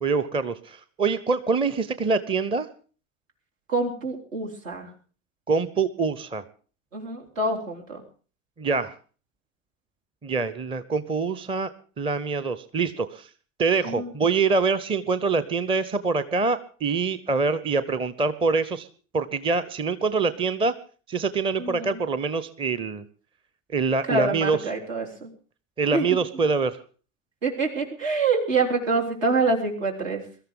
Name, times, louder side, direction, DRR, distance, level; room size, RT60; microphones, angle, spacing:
voice 1, 0.0-2.7 5.5-6.4 8.6-8.9 10.2-11.7 12.0-13.3 13.6-18.9 19.1-20.7 21.1-23.0 23.7-24.6 25.8-26.8, right 4 dB, 15° right, 14 dB, 0.7 m, -25 dB
voice 2, 3.7-4.9 6.9-8.0 13.8-14.1 21.6-22.0 24.1-25.3 25.9-26.1 27.4-30.2, right 3 dB, 70° right, 1 dB, 3.8 m, -26 dB
22.5 x 13.5 x 3.7 m, 0.39 s
figure-of-eight pair, 80°, 40 cm